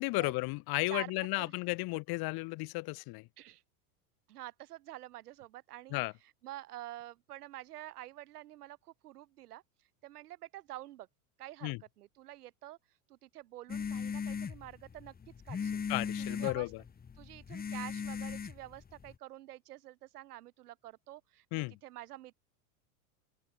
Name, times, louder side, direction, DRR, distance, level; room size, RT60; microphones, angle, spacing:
voice 1, 0.0-3.3 5.9-6.1 11.6-11.8 15.9-16.8 21.5-21.8, left 24 dB, 55° left, 6.5 m, -34 dB
voice 2, 4.3-6.0 6.4-9.6 10.0-11.1 11.4-12.8 13.1-15.1 15.4-15.8 16.2-16.7 17.2-22.4, right 14 dB, 85° right, 6.8 m, -48 dB
sound 1, 13.7-19.1, left 6 dB, 20° left, 3.2 m, -38 dB
open air
supercardioid pair, 120°, 45 cm